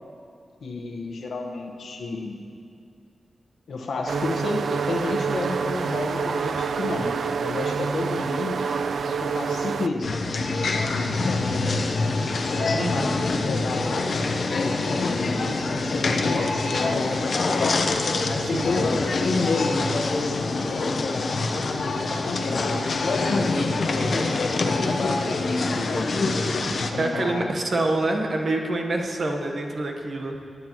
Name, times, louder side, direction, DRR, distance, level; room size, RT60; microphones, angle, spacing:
voice 1, 0.6-2.4 3.7-8.7 9.1-10.2 10.9-11.9 12.6-17.7 18.2-21.9 22.2-25.6 26.7-27.4, left 3 dB, 85° left, 2 dB, 1.2 m, -31 dB
sound 1, 4.1-9.9, right 5 dB, 80° right, 0.3 m, -27 dB
sound 2, 10.0-26.9, left 3 dB, 60° left, 0.8 m, -25 dB
voice 2, 12.8-13.2 18.5-18.7 27.0-30.4, right 2 dB, 45° right, 2 dB, 1.1 m, -26 dB
20.0 x 9.6 x 3.0 m, 2.4 s
wide cardioid pair, 150°, 0 cm